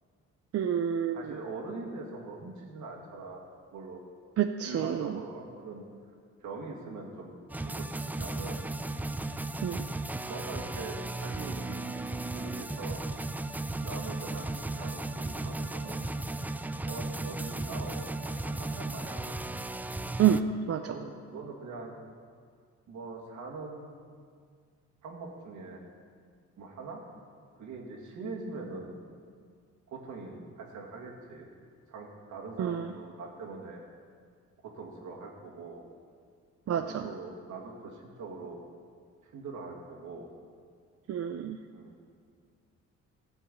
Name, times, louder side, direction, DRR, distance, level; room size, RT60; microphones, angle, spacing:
voice 1, 0.5-1.3 4.4-5.2 9.6-9.9 20.2-20.9 32.6-32.9 36.7-37.1 41.1-41.6, right 9 dB, 55° right, 7 dB, 0.5 m, -28 dB
voice 2, 1.1-3.4 3.7-4.0 4.6-5.8 6.4-8.6 9.0-9.1 10.2-13.0 13.8-16.1 16.9-19.4 20.9-21.9 22.9-24.0 25.0-25.9 26.6-27.0 27.6-29.0 29.9-31.5 31.9-33.8 34.6-35.9 36.7-38.6 39.2-40.3 41.7-41.9, right 3 dB, 75° right, 0 dB, 2.0 m, -42 dB
sound 1, 7.5-20.4, right 2 dB, 5° right, 0.3 m, -35 dB
13.5 x 4.6 x 8.3 m, 2.1 s
cardioid pair, 90°, 30 cm